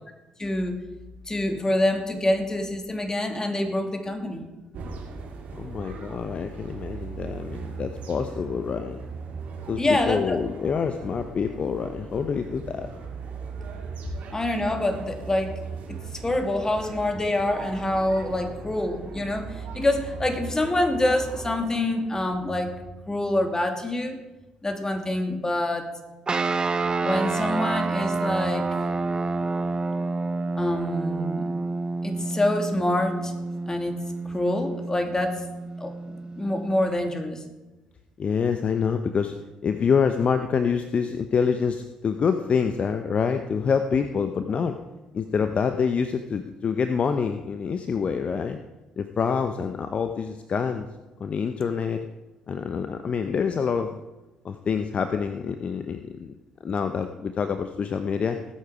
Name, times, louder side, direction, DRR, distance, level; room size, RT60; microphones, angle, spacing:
voice 1, 0.4-0.8 1.3-4.5 9.8-10.4 14.3-15.5 15.9-22.7 23.1-24.2 24.6-25.9 27.0-28.7 30.6-31.5 32.0-33.3 33.7-34.0 34.3-35.4 35.8-37.4 44.5-44.6, left 1 dB, 20° left, 5 dB, 2.5 m, -26 dB
sound 1, 4.7-21.5, right 5 dB, 60° right, 2.6 m, -38 dB
voice 2, 5.5-9.0 9.7-12.9 38.2-39.3 39.6-44.8 45.1-48.6 49.0-50.9 51.2-52.1 52.5-54.0 54.4-56.4 56.6-58.4, left 6 dB, 45° left, 8 dB, 0.8 m, -26 dB
sound 2, 26.3-36.9, right 3 dB, 30° right, 0.8 m, -28 dB
19.0 x 8.4 x 4.9 m, 1.1 s
hypercardioid pair, 50°, 3 cm